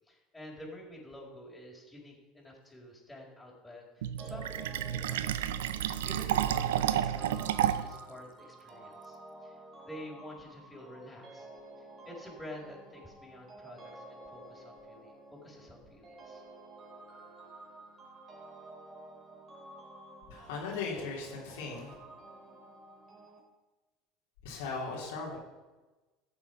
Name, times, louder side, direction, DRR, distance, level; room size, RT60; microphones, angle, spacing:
voice 1, 0.1-5.4 5.8-9.6 9.8-11.5 11.8-16.4, left 1 dB, 10° left, -2 dB, 4.5 m, -49 dB
Fill (with liquid), 4.0-8.0, right 11 dB, 85° right, 0.5 m, -31 dB
sound 1, 4.2-23.4, right 2 dB, 35° right, 3.3 m, -51 dB
voice 2, 20.3-21.9 24.4-25.4, left 4 dB, 75° left, -3 dB, 3.2 m, -38 dB
14.0 x 7.2 x 5.8 m, 1.2 s
hypercardioid pair, 80°, 0 cm